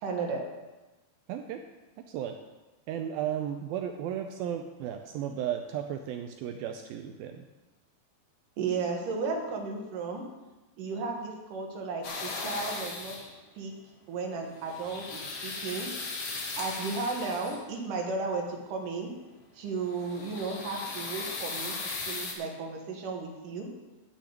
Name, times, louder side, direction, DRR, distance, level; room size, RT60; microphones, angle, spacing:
voice 1, 0.0-0.4 8.6-10.2 10.8-13.2 13.5-13.7 14.1-15.9 16.6-19.1 19.5-21.7 22.1-23.7, right 4 dB, 60° right, 1 dB, 2.8 m, -34 dB
voice 2, 1.3-1.6 2.1-2.3 2.9-7.5, right 10 dB, 80° right, 5 dB, 2.2 m, -34 dB
sound 1, 12.0-13.4 14.5-17.7 19.8-22.3, left 3 dB, 55° left, 1.8 m, -37 dB
10.5 x 6.1 x 8.3 m, 1.1 s
omnidirectional pair, 4.7 m